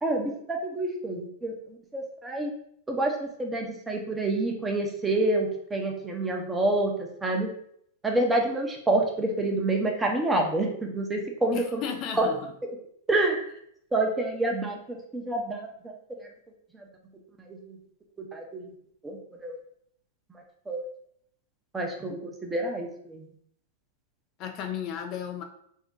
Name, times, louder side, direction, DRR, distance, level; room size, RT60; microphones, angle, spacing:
voice 1, 0.0-2.5 2.9-7.5 8.0-11.8 12.1-12.3 13.1-13.4 13.9-16.3 17.4-17.8 18.2-18.7 19.0-19.6 20.7-20.8 21.7-23.3, right 2 dB, 10° right, 1 dB, 0.6 m, -28 dB
voice 2, 11.5-12.4 24.4-25.4, left 8 dB, 45° left, 5 dB, 0.3 m, -34 dB
2.6 x 2.1 x 3.6 m, 0.68 s
hypercardioid pair, 110°, 0 cm